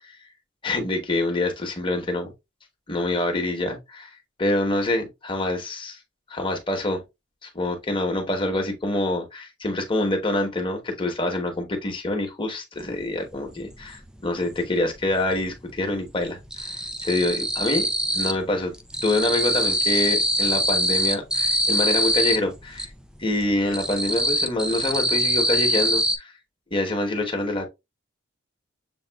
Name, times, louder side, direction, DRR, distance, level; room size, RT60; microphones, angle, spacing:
voice 1, 0.6-2.3 2.9-4.1 4.4-6.0 6.3-7.0 7.4-17.9 18.1-18.7 19.0-22.9 23.2-26.3 26.7-27.7, left 2 dB, 25° left, 1.1 m, -26 dB
sound 1, 12.9-13.0 13.3-14.6 14.9-15.6 15.8-18.5 18.7-22.9 23.3-26.2, equal, 5° right, 0.4 m, -24 dB
7.1 x 2.4 x 2.3 m
head